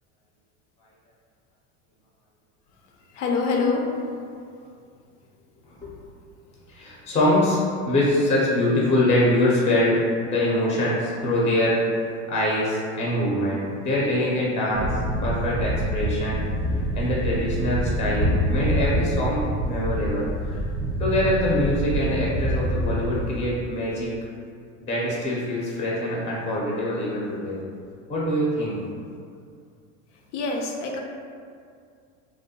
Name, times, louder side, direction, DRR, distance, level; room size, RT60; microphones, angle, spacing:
voice 1, 3.2-3.8 30.3-31.0, left 4 dB, 80° left, 1 dB, 0.6 m, -25 dB
voice 2, 6.7-7.6 7.9-10.0 10.2-14.9 15.2-16.4 16.7-20.6 21.0-24.1 24.8-27.6 28.1-28.8, left 1 dB, 20° left, -5 dB, 0.6 m, -24 dB
sound 1, 14.7-23.4, right 1 dB, 30° right, 0.5 m, -26 dB
2.6 x 2.1 x 2.7 m, 2.3 s
supercardioid pair, 110°, 35 cm